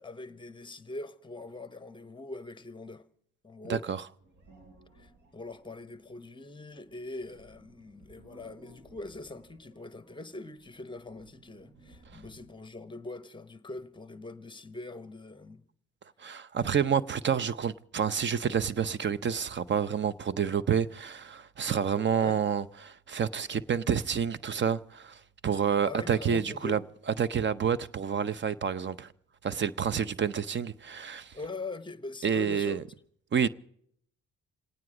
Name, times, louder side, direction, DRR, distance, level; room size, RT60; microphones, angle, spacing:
voice 1, 0.0-3.0 3.4-3.8 4.9-15.6 16.2-16.3 22.1-22.4 25.8-26.8 31.3-32.8, left 2 dB, 15° left, 1.0 m, -42 dB
voice 2, 3.6-4.0 16.2-26.8 27.2-29.1 29.4-31.3 32.2-32.8 33.3-33.5, right 7 dB, 40° right, 0.7 m, -29 dB
sound 1, 4.2-12.7, right 2 dB, 70° right, 4.1 m, -59 dB
28.0 x 9.4 x 4.9 m
cardioid pair, 90°, 30 cm